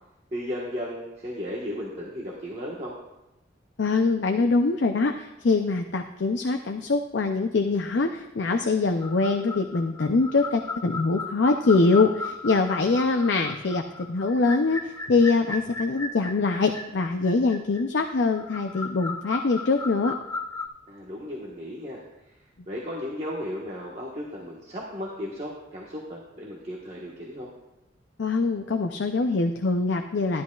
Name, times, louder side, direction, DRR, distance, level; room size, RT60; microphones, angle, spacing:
voice 1, 0.3-2.9 13.0-13.2 20.9-22.0 22.7-27.5, equal, 35° right, -5 dB, 1.3 m, -35 dB
voice 2, 3.8-20.2 28.2-30.4, left 3 dB, 65° left, 5 dB, 0.5 m, -23 dB
sound 1, 9.0-20.7, left 3 dB, 15° left, 0.5 m, -36 dB
13.0 x 11.0 x 2.4 m, 0.93 s
head